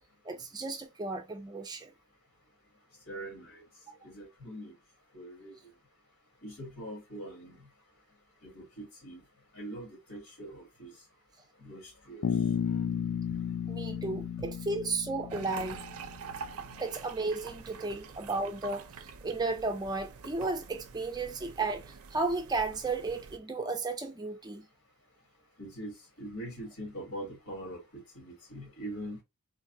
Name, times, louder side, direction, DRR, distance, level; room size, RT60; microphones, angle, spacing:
voice 1, 0.3-1.9 13.7-15.8 16.8-18.9 19.2-24.6, right 3 dB, 20° right, 0.5 m, -34 dB
voice 2, 3.1-3.6 4.0-4.7 5.1-5.6 6.4-7.7 8.4-9.2 9.5-10.9 11.6-12.3 13.3-13.4 14.4-14.5 25.6-29.2, right 1 dB, 85° left, 2.0 m, -43 dB
Bass guitar, 12.2-16.3, left 7 dB, 60° left, 0.3 m, -33 dB
sound 1, 15.3-23.4, right 5 dB, 75° right, 0.5 m, -46 dB
3.8 x 2.3 x 2.6 m
head